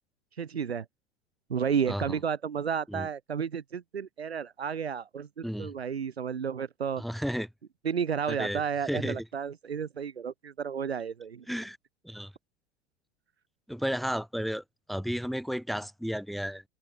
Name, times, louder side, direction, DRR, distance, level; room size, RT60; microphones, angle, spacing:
voice 1, 0.4-0.9 1.5-7.0 7.8-11.5, right 7 dB, 80° right, 1.1 m, -32 dB
voice 2, 7.0-7.5 8.3-9.2 11.5-11.8 12.0-12.3 13.7-16.6, equal, ahead, 2.2 m, -33 dB
figure-of-eight pair, 85°, 31 cm